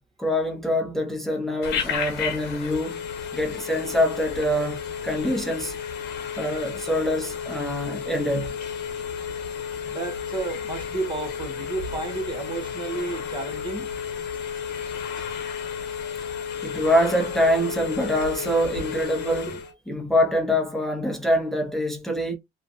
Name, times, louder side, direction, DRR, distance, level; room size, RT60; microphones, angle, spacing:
voice 1, 0.2-3.0 3.3-5.7 6.4-8.5 16.6-19.6 19.9-22.4, equal, ahead, 0.7 m, -25 dB
Telephone, 1.6-19.7, left 7 dB, 80° left, 0.7 m, -32 dB
voice 2, 9.8-13.9 14.6-15.3 19.5-19.6, right 3 dB, 30° right, 0.7 m, -33 dB
2.6 x 2.2 x 2.6 m
cardioid pair, 110°, 17 cm